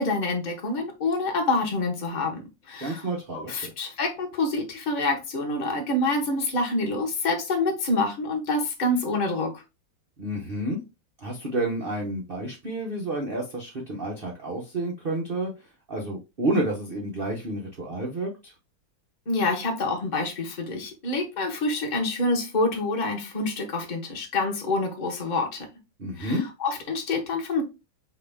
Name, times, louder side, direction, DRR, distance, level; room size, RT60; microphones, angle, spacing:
voice 1, 0.0-3.1 3.3-9.6 19.3-25.7 26.2-27.6, left 2 dB, 30° left, 2 dB, 0.8 m, -27 dB
voice 2, 2.8-3.7 10.2-10.8 11.2-15.5 15.9-18.5 26.0-26.5, right 1 dB, 80° right, -1 dB, 0.5 m, -30 dB
4.7 x 2.9 x 3.4 m, 0.26 s
omnidirectional pair, 2.3 m